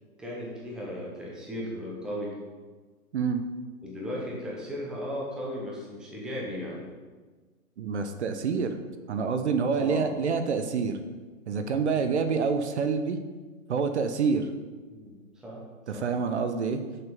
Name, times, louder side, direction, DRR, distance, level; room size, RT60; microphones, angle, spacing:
voice 1, 0.2-2.4 3.8-6.9 9.7-10.2 14.9-15.6 15.9-16.1, equal, ahead, -5 dB, 0.8 m, -36 dB
voice 2, 7.8-8.8 9.1-11.0 11.5-13.2 13.7-14.5 15.9-16.8, right 5 dB, 50° right, 8 dB, 0.8 m, -27 dB
7.0 x 6.7 x 5.3 m, 1.4 s
hypercardioid pair, 150°, 43 cm